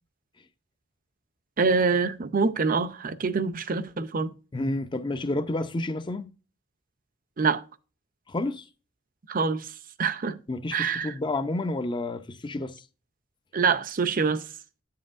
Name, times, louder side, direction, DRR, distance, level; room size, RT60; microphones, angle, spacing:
voice 1, 1.6-4.3 7.4-7.6 9.3-9.7 10.0-10.4 10.7-11.1 13.5-14.5, right 4 dB, 45° right, 0.6 m, -25 dB
voice 2, 4.5-6.3 8.3-8.7 10.5-12.8, left 2 dB, 25° left, 0.6 m, -30 dB
9.3 x 7.5 x 2.5 m
head